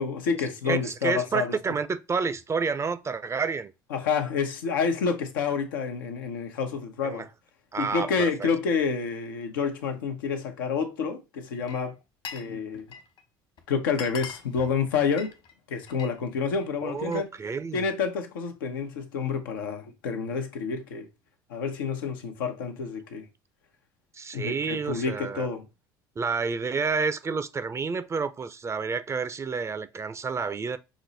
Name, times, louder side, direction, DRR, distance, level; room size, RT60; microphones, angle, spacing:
voice 1, 0.0-1.5 3.9-7.3 7.8-12.0 12.3-12.9 13.7-15.3 15.7-17.3 17.7-21.1 21.5-23.3 24.3-25.7, left 5 dB, 90° left, 0.8 m, -28 dB
voice 2, 0.7-3.7 7.0-7.3 7.7-8.5 16.8-17.9 24.1-25.5 26.2-30.8, right 5 dB, 25° right, 0.5 m, -29 dB
Glass, 11.5-12.5 12.8-13.2 13.6-13.7 13.9-16.2 16.5-17.3, left 5 dB, 55° left, 1.3 m, -42 dB
6.1 x 2.1 x 3.9 m
hypercardioid pair, 75°, 11 cm